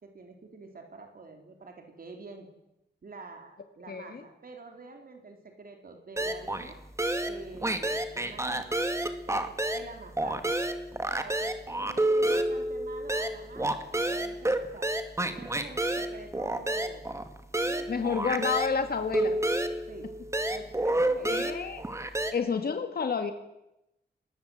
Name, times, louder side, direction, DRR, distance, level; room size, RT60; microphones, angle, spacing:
voice 1, 0.0-2.5 3.0-6.8 7.2-8.7 9.3-9.5 9.7-10.5 11.0-14.9 15.3-17.0 17.6-18.5 18.8-19.4 19.9-20.1 20.5-21.3, right 3 dB, 55° right, 4 dB, 4.0 m, -46 dB
voice 2, 3.9-4.2 17.9-19.4 21.2-21.8 22.3-23.3, left 5 dB, 60° left, 7 dB, 2.0 m, -30 dB
sound 1, 6.2-6.7 7.0-9.9 10.2-18.8 19.1-22.3, right 1 dB, 15° right, 2.2 m, -29 dB
29.5 x 20.5 x 8.0 m, 0.89 s
wide cardioid pair, 140°, 17 cm